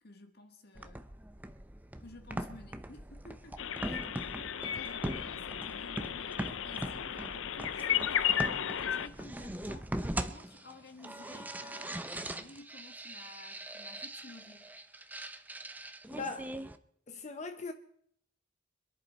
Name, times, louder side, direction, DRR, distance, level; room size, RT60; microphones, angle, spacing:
voice 1, 0.0-1.1 2.0-4.2 4.6-8.5 8.8-9.9 10.3-14.7, left 2 dB, 55° left, 1.7 m, -53 dB
sound 1, 0.7-16.8, right 1 dB, 10° right, 0.7 m, -41 dB
sound 2, 3.6-9.1, left 9 dB, 85° left, 0.6 m, -34 dB
voice 2, 16.1-16.5 17.1-17.7, left 3 dB, 35° left, 0.8 m, -39 dB
26.5 x 10.5 x 4.2 m
head